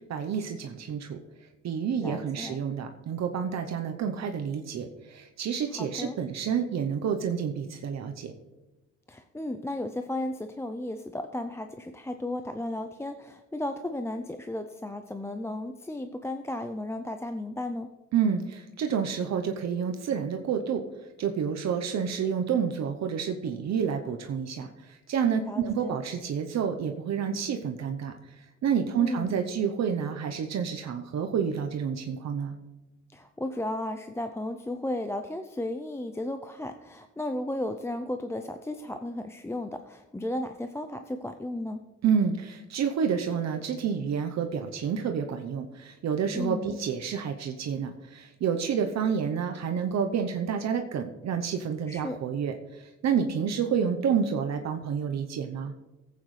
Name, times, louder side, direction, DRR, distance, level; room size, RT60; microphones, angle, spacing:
voice 1, 0.1-1.2 1.6-8.3 18.1-20.8 21.2-28.1 28.6-32.6 42.0-55.7, right 7 dB, 60° right, 5 dB, 0.9 m, -29 dB
voice 2, 2.0-2.6 5.7-6.2 9.1-17.9 25.5-26.0 29.0-29.4 33.1-41.9 46.3-46.7 51.9-52.2, left 1 dB, 10° left, 7 dB, 0.5 m, -34 dB
14.5 x 8.5 x 3.2 m, 1.1 s
cardioid pair, 90°, 30 cm